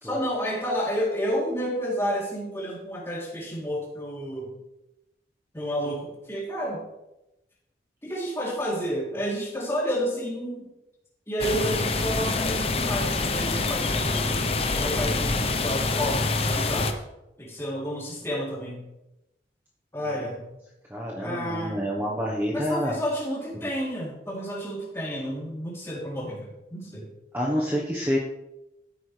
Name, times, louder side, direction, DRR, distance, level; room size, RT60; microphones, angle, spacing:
voice 1, 0.0-4.5 5.5-6.8 8.0-10.7 11.3-14.4 14.7-16.2 16.5-16.9 17.4-18.8 19.9-20.4 21.2-21.8 22.5-27.1, equal, 15° left, -5 dB, 3.2 m, -30 dB
sound 1, 11.4-16.9, left 3 dB, 35° left, 0.9 m, -26 dB
voice 2, 20.9-23.0 23.6-23.7 27.3-28.2, equal, 15° right, -4 dB, 1.2 m, -28 dB
13.5 x 10.0 x 3.4 m, 0.93 s
head